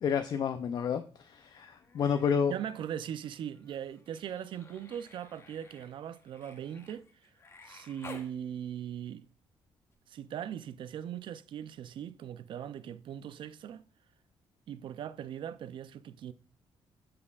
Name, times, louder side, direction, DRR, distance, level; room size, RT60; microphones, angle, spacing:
voice 1, 0.0-2.5, left 7 dB, 50° left, 0.4 m, -30 dB
Human voice, 1.6-2.4 2.7-8.3 9.9-10.0, left 3 dB, 30° left, 0.9 m, -54 dB
voice 2, 2.5-7.1 7.6-9.2 10.1-13.8 14.7-16.3, right 9 dB, 60° right, 0.4 m, -40 dB
12.5 x 4.2 x 2.3 m
cardioid pair, 150°, 10 cm